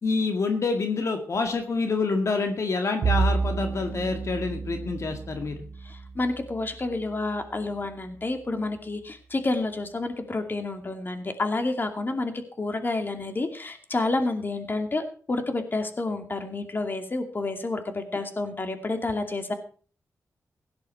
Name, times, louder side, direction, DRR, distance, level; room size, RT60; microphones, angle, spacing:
voice 1, 0.0-5.7, left 4 dB, 60° left, 5 dB, 2.0 m, -27 dB
Bowed string instrument, 3.0-7.6, right 4 dB, 80° right, 1.2 m, -30 dB
voice 2, 5.8-12.3 12.6-19.5, left 2 dB, 35° left, 6 dB, 2.5 m, -29 dB
16.5 x 11.0 x 4.6 m, 0.42 s
cardioid pair, 80°, 6 cm